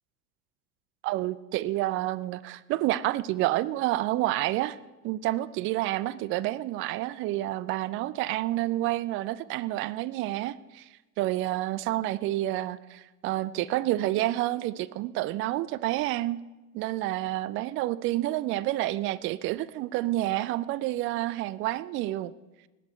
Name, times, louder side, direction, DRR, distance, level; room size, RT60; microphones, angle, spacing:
voice 1, 1.0-4.8 5.0-10.9 11.2-16.4 16.7-22.3, right 16 dB, 30° right, 16 dB, 0.4 m, -29 dB
19.0 x 8.5 x 4.4 m, 1.1 s
figure-of-eight pair, 75°, 46 cm